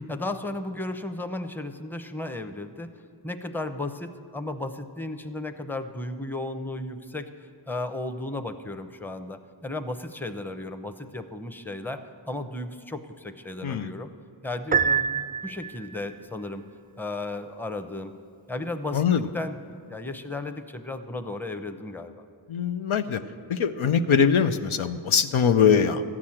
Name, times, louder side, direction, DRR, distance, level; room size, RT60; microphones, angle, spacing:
voice 1, 0.1-2.9 3.2-14.1 14.4-16.7 17.0-18.1 18.5-19.0 19.3-22.1, left 2 dB, 5° left, 8 dB, 0.7 m, -34 dB
Piano, 14.7-16.0, right 6 dB, 20° right, 0.3 m, -25 dB
voice 2, 18.9-19.3 22.5-23.2 23.5-26.0, left 7 dB, 80° left, 9 dB, 0.6 m, -22 dB
14.0 x 6.1 x 8.7 m, 2.4 s
wide cardioid pair, 45°, 48 cm